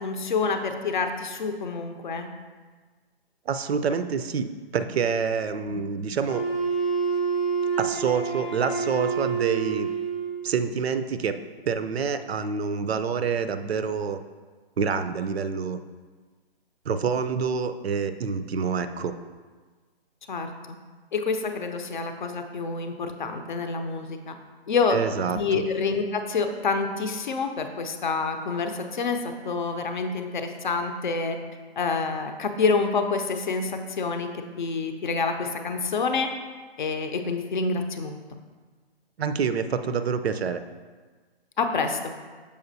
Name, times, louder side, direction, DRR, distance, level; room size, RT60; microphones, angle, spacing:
voice 1, 0.0-2.3 5.7-5.8 20.3-20.8 21.1-24.4 24.7-25.0 25.3-31.4 31.8-36.3 36.8-38.1 41.6-42.0, left 4 dB, 50° left, 6 dB, 0.6 m, -27 dB
voice 2, 3.5-4.5 4.7-6.4 7.8-9.9 10.4-11.4 11.7-14.2 14.8-15.8 16.9-19.1 24.9-25.4 39.2-40.6, right 6 dB, 75° right, 10 dB, 0.5 m, -27 dB
Wind instrument woodwind instrument, 6.3-10.4, right 5 dB, 15° left, 0.8 m, -27 dB
6.9 x 5.1 x 2.7 m, 1.4 s
hypercardioid pair, 155°, 31 cm